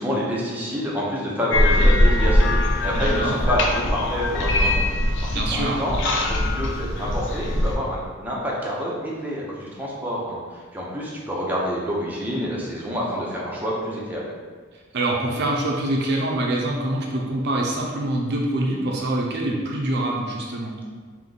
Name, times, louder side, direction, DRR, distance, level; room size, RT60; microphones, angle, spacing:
voice 1, 0.0-14.2, equal, 10° right, -5 dB, 0.7 m, -28 dB
sound 1, 1.5-7.8, left 1 dB, 60° left, 0.5 m, -21 dB
voice 2, 2.9-3.4 5.3-5.9 14.9-20.8, right 1 dB, 55° right, -2 dB, 0.5 m, -25 dB
3.6 x 2.7 x 3.9 m, 1.5 s
head